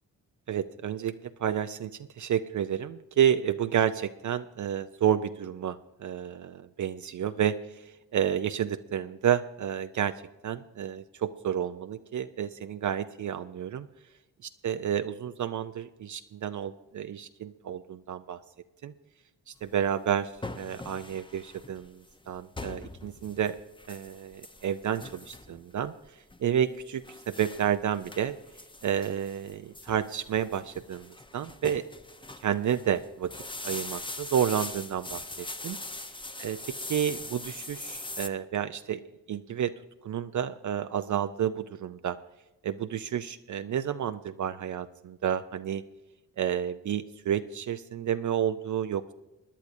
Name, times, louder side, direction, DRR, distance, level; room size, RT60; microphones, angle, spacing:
voice 1, 0.5-10.1 10.4-13.9 14.6-18.4 18.8-18.9 19.5-23.6 23.9-28.4 28.8-31.9 32.4-33.3 33.6-35.8 36.4-39.0 39.3-39.7 40.0-42.2 42.6-45.8 46.4-49.1, right 9 dB, 50° right, 10 dB, 0.5 m, -30 dB
sound 1, 19.6-38.3, left 2 dB, 15° left, 0.8 m, -42 dB
21.0 x 10.5 x 2.7 m, 1.0 s
supercardioid pair, 50°, 37 cm